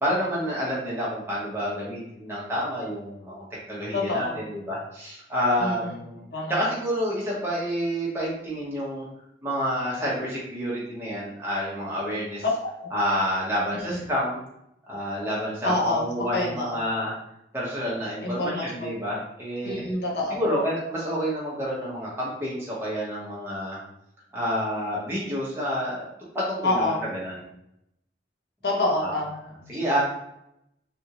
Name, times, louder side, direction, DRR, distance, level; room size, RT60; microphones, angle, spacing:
voice 1, 0.0-6.2 6.5-9.1 9.4-12.4 12.9-14.4 14.9-17.1 17.5-19.8 20.3-23.8 24.3-26.1 26.3-27.3 29.0-29.1 29.7-30.0, equal, 15° right, -7 dB, 1.0 m, -28 dB
voice 2, 3.9-4.4 5.6-6.0 6.3-6.7 12.4-12.5 12.8-12.9 13.7-14.1 15.6-16.1 16.3-16.8 18.2-18.7 19.6-20.4 26.6-27.0 28.6-29.8, left 2 dB, 70° left, -2 dB, 1.0 m, -27 dB
3.4 x 2.6 x 2.9 m, 0.80 s
head